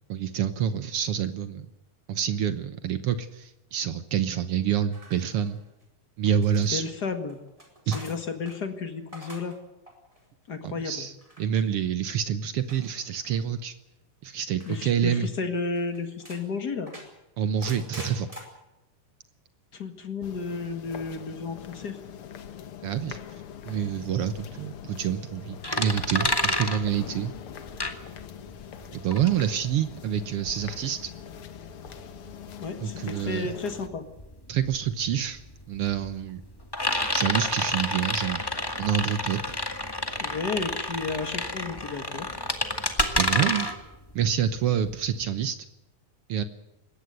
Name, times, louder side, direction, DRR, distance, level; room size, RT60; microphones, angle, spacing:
voice 1, 0.0-1.7 2.1-5.6 6.2-6.8 7.9-8.0 10.6-13.7 14.2-15.3 17.4-18.3 22.8-23.2 23.6-27.3 28.9-31.1 32.8-33.5 34.5-35.4 35.7-36.4 37.1-38.4 38.8-39.6 43.1-43.7 44.1-45.6 46.3-46.4, right 9 dB, 70° right, 11 dB, 1.4 m, -27 dB
sound 1, 4.9-5.8 6.2-8.6 9.0-9.6 9.9-10.2 11.2-11.6 12.7-13.4 14.6-14.9 15.3-15.4 15.7-16.4 16.9-18.4, equal, 10° right, 4.1 m, -46 dB
voice 2, 6.7-7.4 7.9-9.5 10.5-11.1 14.7-16.9 19.7-22.0 32.6-34.0 40.2-42.3, left 4 dB, 35° left, 7 dB, 1.9 m, -32 dB
sound 2, 20.2-33.9, left 8 dB, 55° left, 1.7 m, -43 dB
sound 3, 25.6-28.5 28.8-45.2, left 1 dB, 10° left, 1.1 m, -29 dB
21.0 x 17.5 x 8.0 m, 0.93 s
omnidirectional pair, 3.9 m